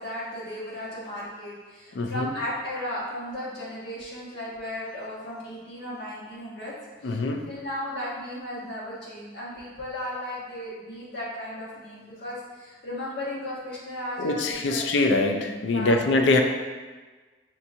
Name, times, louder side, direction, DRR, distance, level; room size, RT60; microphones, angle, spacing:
voice 1, 0.0-6.7 7.0-7.2 7.5-14.8 15.7-16.0, left 1 dB, 55° left, -7 dB, 1.3 m, -35 dB
voice 2, 1.9-2.3 7.0-7.4 14.2-16.4, left 2 dB, 70° left, 4 dB, 0.4 m, -23 dB
5.6 x 2.9 x 2.6 m, 1.3 s
head